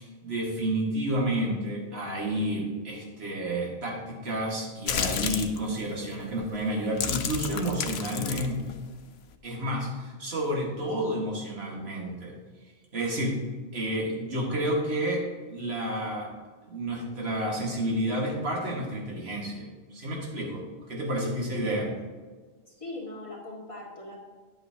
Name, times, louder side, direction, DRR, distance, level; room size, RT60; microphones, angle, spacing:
voice 1, 0.0-8.8 9.4-12.3 12.9-13.4 13.7-15.2 15.5-16.3 16.7-21.9, right 1 dB, 85° right, -2 dB, 1.9 m, -30 dB
sound 1, 4.9-5.6 6.3-6.5 6.9-9.4, left 7 dB, 80° left, 0.9 m, -31 dB
voice 2, 22.6-24.2, left 1 dB, 30° left, -5 dB, 2.1 m, -40 dB
10.0 x 7.9 x 2.8 m, 1.4 s
omnidirectional pair, 1.0 m